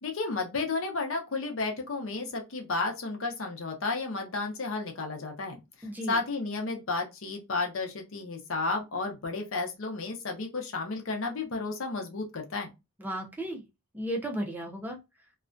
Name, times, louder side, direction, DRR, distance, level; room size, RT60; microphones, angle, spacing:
voice 1, 0.0-5.6 6.1-12.7, left 3 dB, 65° left, 0.6 m, -32 dB
voice 2, 5.8-6.2 13.0-13.6 13.9-15.0, right 1 dB, 10° right, 0.4 m, -34 dB
2.3 x 2.1 x 2.5 m
head